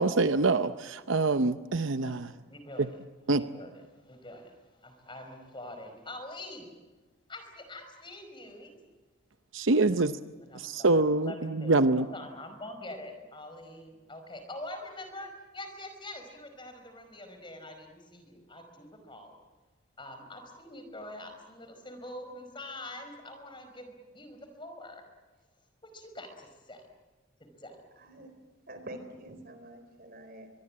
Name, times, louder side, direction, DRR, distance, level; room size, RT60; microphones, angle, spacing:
voice 1, 0.0-2.3 2.8-2.9 3.3-3.4 9.5-10.1 10.5-12.1, right 3 dB, 65° right, 11 dB, 0.8 m, -25 dB
voice 2, 2.0-2.9 3.3-6.7 7.3-8.8 10.4-19.3 20.0-25.0 25.8-26.8 27.4-27.8, left 1 dB, 25° left, 6 dB, 4.9 m, -45 dB
voice 3, 28.0-28.3 28.7-30.6, right 1 dB, 45° right, 8 dB, 4.1 m, -46 dB
24.0 x 23.5 x 8.7 m, 1.3 s
head